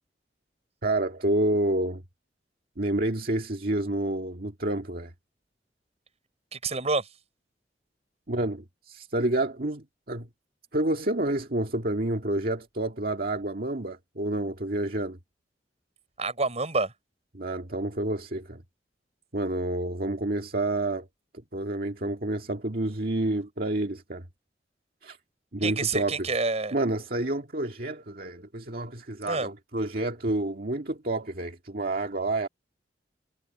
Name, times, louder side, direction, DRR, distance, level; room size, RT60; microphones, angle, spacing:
voice 1, 0.8-2.0 2.8-5.1 8.3-10.3 10.7-15.2 17.3-18.6 19.3-21.1 21.5-24.3 25.0-25.2 25.5-26.3 26.7-32.5, right 1 dB, 55° right, 2.0 m, -29 dB
voice 2, 6.5-7.1 16.2-16.9 25.6-26.7 29.3-29.5, right 3 dB, 40° right, 6.1 m, -28 dB
head